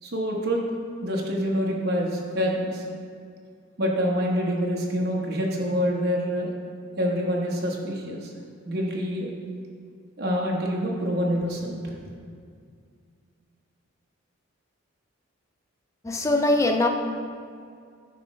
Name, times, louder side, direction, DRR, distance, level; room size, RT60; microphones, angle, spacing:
voice 1, 0.0-0.6 1.0-2.8 3.8-6.5 7.0-8.3 8.6-9.3 10.2-11.9, equal, 50° right, -2 dB, 1.0 m, -26 dB
voice 2, 16.0-16.9, left 2 dB, 15° left, 4 dB, 0.4 m, -21 dB
9.1 x 3.1 x 5.2 m, 2.2 s
head